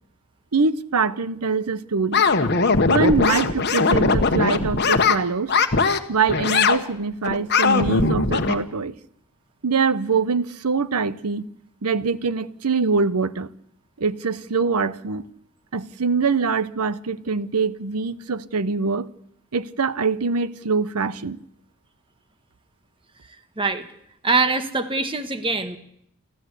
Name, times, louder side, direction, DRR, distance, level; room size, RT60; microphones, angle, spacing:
voice 1, 0.5-2.2 2.9-5.5 6.1-8.9 9.6-11.4 11.8-13.5 14.0-15.3 15.7-19.1 19.5-21.4, right 4 dB, 85° right, 0.9 m, -23 dB
sound 1, 2.1-5.2 5.5-6.0 6.3-6.8 7.2-8.6, left 4 dB, 50° left, 1.3 m, -19 dB
voice 2, 23.6-23.9 24.2-25.8, right 3 dB, 25° right, 1.4 m, -23 dB
29.0 x 13.0 x 8.3 m
head